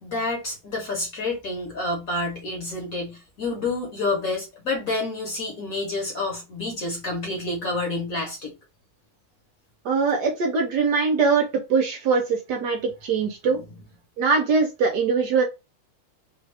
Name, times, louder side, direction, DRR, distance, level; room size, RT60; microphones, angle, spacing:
voice 1, 0.0-8.5 13.1-13.3, left 2 dB, 50° left, 1.3 m, -29 dB
voice 2, 9.8-13.6 14.2-15.4, right 5 dB, 65° right, 1.1 m, -22 dB
3.5 x 2.3 x 3.3 m
omnidirectional pair, 2.2 m